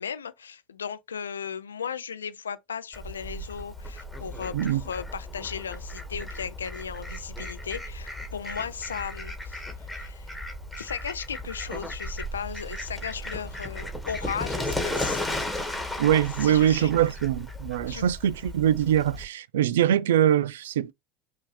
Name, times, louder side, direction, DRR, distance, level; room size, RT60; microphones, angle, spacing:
voice 1, 0.0-10.4 10.7-15.5 16.4-17.1 17.9-18.1, left 7 dB, 85° left, 0.4 m, -36 dB
Fowl, 2.9-19.2, left 1 dB, 5° left, 1.7 m, -35 dB
voice 2, 16.0-20.9, right 10 dB, 75° right, 0.3 m, -23 dB
5.6 x 2.7 x 3.2 m
hypercardioid pair, 80°, 0 cm